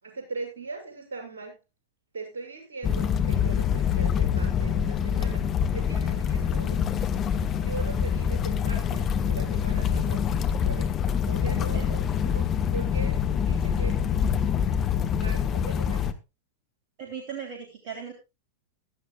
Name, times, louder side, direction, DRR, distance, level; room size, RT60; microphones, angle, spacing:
voice 1, 0.0-1.6 2.1-5.5 5.7-6.9 7.6-10.3 10.6-10.9 11.3-14.0 15.1-16.1, right 3 dB, 65° right, 2 dB, 7.2 m, -40 dB
sound 1, 2.8-16.1, left 8 dB, 30° left, 1.3 m, -25 dB
voice 2, 11.7-12.1 17.0-18.1, right 7 dB, 45° right, 2 dB, 3.5 m, -38 dB
16.0 x 13.0 x 2.4 m, 0.27 s
figure-of-eight pair, 90°, 0 cm